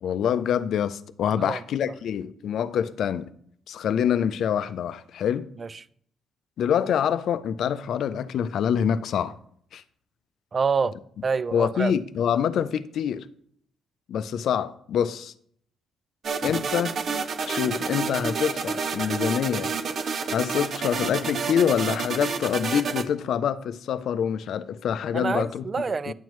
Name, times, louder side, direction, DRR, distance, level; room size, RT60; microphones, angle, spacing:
voice 1, 0.0-3.3 3.7-5.5 6.6-9.3 9.7-9.8 11.5-13.3 14.1-15.3 16.4-17.0 17.5-19.7 20.3-25.6 26.1-26.2, left 8 dB, 70° left, 0.5 m, -26 dB
voice 2, 10.5-11.0 11.2-12.0 25.1-26.1, right 5 dB, 35° right, 0.4 m, -27 dB
sound 1, 16.2-23.0, right 5 dB, 55° right, 0.7 m, -29 dB
10.0 x 7.2 x 3.1 m
cardioid pair, 90°, 0 cm